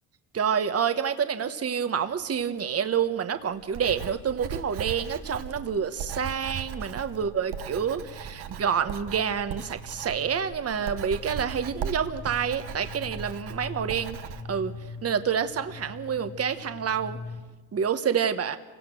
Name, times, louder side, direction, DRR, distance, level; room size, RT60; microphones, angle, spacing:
voice 1, 0.3-14.2 14.5-14.7 15.0-17.2 17.7-18.6, right 7 dB, 35° right, 9 dB, 1.3 m, -28 dB
sound 1, 2.0-17.4, left 3 dB, 80° left, 6.8 m, -45 dB
Writing, 3.6-14.4, right 7 dB, 65° right, 1.3 m, -38 dB
28.5 x 17.5 x 6.3 m, 1.3 s
supercardioid pair, 85°, 43 cm